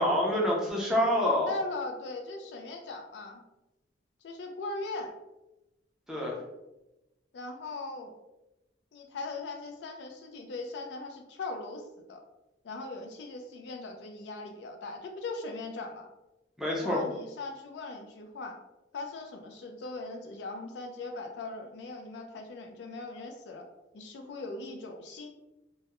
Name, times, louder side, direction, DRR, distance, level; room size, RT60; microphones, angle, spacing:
voice 1, 0.0-1.6 6.1-6.4 16.6-17.0, left 1 dB, ahead, -3 dB, 0.4 m, -27 dB
voice 2, 1.5-3.4 4.2-5.1 7.3-8.2 8.9-12.2 12.6-16.1 16.8-18.6 18.9-23.6 23.9-25.3, left 3 dB, 60° left, 4 dB, 0.3 m, -39 dB
2.2 x 2.0 x 2.8 m, 0.97 s
head